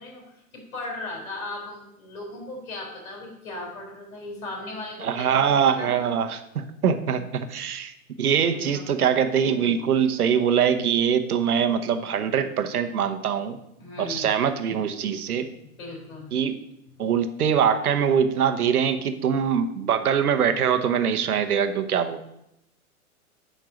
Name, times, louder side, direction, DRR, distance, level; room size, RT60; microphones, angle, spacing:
voice 1, 0.0-5.4 5.7-6.1 8.5-8.9 13.8-14.4 15.8-16.3, left 2 dB, 65° left, 0 dB, 3.9 m, -37 dB
voice 2, 5.0-13.6 14.0-15.5 16.3-16.6 17.0-22.2, right 7 dB, 85° right, 9 dB, 1.0 m, -23 dB
9.2 x 4.5 x 6.1 m, 0.82 s
hypercardioid pair, 120°, 43 cm